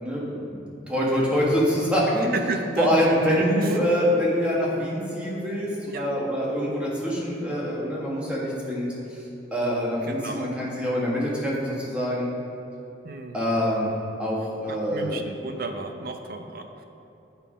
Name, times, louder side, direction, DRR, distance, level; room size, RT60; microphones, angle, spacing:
voice 1, 0.0-2.3 2.8-9.2 9.5-12.3 13.3-13.9 14.2-15.2, equal, 5° right, -5 dB, 1.5 m, -25 dB
voice 2, 2.3-2.9 3.2-3.9 5.9-6.1 10.0-10.5 13.0-13.5 14.7-16.8, right 3 dB, 50° right, 6 dB, 0.6 m, -33 dB
8.9 x 5.6 x 5.0 m, 2.8 s
head